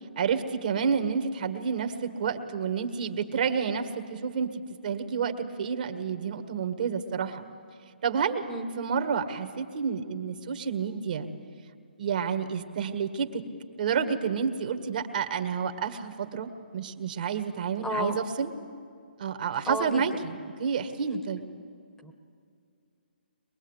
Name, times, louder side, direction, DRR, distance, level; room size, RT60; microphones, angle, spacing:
voice 1, 0.2-7.4 8.0-8.5 8.8-11.3 12.0-13.4 13.8-18.5 19.2-21.4, right 6 dB, 50° right, 7 dB, 1.8 m, -29 dB
voice 2, 17.8-18.2 19.7-20.0 22.0-22.1, equal, 5° left, 4 dB, 1.2 m, -32 dB
22.5 x 22.0 x 8.2 m, 2.4 s
hypercardioid pair, 150°, 6 cm